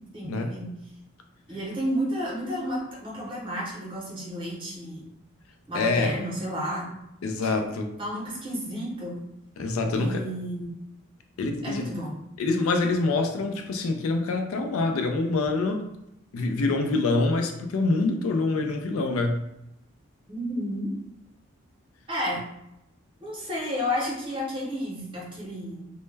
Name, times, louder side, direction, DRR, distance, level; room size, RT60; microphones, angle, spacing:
voice 1, 0.1-0.7 1.5-5.1 5.7-6.9 8.0-9.2 10.0-10.7 11.6-12.1 20.3-20.9 22.1-22.5 23.2-25.9, equal, 25° right, -5 dB, 0.7 m, -31 dB
voice 2, 5.7-6.1 7.2-7.9 9.6-10.2 11.4-11.8 12.4-15.9 16.3-19.4, left 3 dB, 80° left, 5 dB, 0.4 m, -25 dB
2.1 x 2.1 x 3.1 m, 0.84 s
head